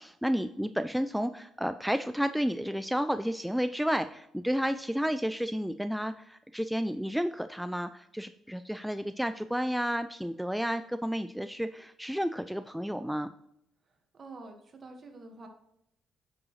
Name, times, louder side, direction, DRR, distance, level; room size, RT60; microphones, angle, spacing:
voice 1, 0.0-13.3, equal, ahead, 10 dB, 0.3 m, -31 dB
voice 2, 13.8-15.5, right 3 dB, 45° right, 4 dB, 1.6 m, -48 dB
8.9 x 6.2 x 3.2 m, 0.76 s
cardioid pair, 90°, 0 cm